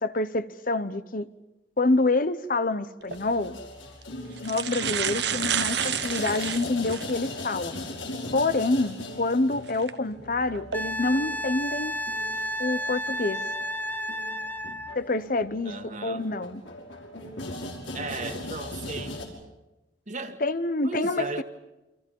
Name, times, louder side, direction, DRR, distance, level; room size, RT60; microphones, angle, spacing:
voice 1, 0.0-1.3 1.8-3.6 4.4-7.8 8.3-12.0 12.6-13.4 14.9-16.6 20.4-21.4, left 2 dB, 45° left, 1.0 m, -27 dB
sound 1, 3.0-3.2 4.0-4.1 4.4-7.2 7.7-7.8 9.7-9.9 10.5-10.8, right 9 dB, 60° right, 1.1 m, -30 dB
sound 2, 3.1-19.3, left 1 dB, 85° left, 5.6 m, -39 dB
Wind instrument woodwind instrument, 10.7-15.0 17.7-17.8, equal, 10° left, 0.9 m, -32 dB
voice 2, 15.7-16.3 17.9-19.2 20.1-20.4 20.8-21.4, right 3 dB, 40° right, 1.9 m, -36 dB
29.5 x 26.5 x 5.5 m
head